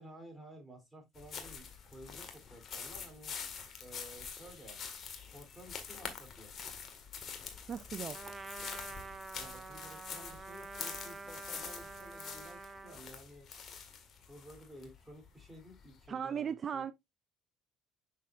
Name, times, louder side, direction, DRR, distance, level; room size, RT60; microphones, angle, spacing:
voice 1, 0.0-3.3 3.8-4.8 5.3-6.5 9.4-13.5 14.3-16.9, right 1 dB, 5° right, 3.4 m, -53 dB
sound 1, 1.1-16.0, left 6 dB, 50° left, 1.8 m, -46 dB
voice 2, 7.7-8.3 16.1-16.9, right 7 dB, 40° right, 0.4 m, -37 dB
Trumpet, 8.1-13.0, right 3 dB, 20° right, 0.8 m, -47 dB
6.5 x 6.4 x 2.5 m
supercardioid pair, 90°, 0 cm